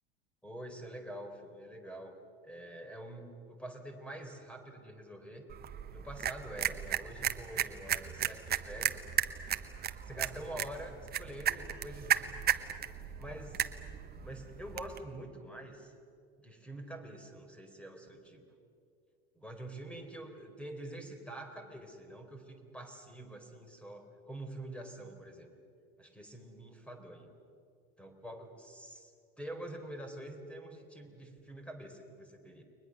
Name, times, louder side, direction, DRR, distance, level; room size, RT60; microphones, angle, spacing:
voice 1, 0.4-2.2 2.4-5.5 5.9-9.0 10.1-12.4 13.2-13.7 14.2-15.9 16.4-18.4 19.3-25.5 26.0-27.3 28.0-29.1 29.4-32.6, right 1 dB, 5° left, 6 dB, 4.3 m, -46 dB
sound 1, 5.5-15.0, right 10 dB, 30° right, 1.2 m, -35 dB
30.0 x 23.0 x 6.7 m, 2.4 s
hypercardioid pair, 80°, 31 cm